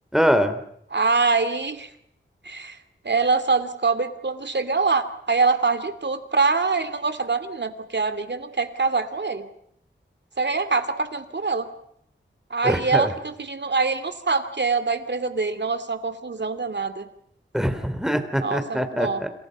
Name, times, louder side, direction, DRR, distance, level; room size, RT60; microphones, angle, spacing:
voice 1, 0.1-0.5 12.6-13.1 17.5-19.3, equal, ahead, 9 dB, 3.8 m, -23 dB
voice 2, 0.9-1.9 2.4-2.8 3.0-9.5 10.4-11.7 12.5-17.1 18.4-19.2, right 4 dB, 60° right, 9 dB, 2.7 m, -24 dB
29.5 x 27.5 x 5.5 m, 0.73 s
wide cardioid pair, 60°, 20 cm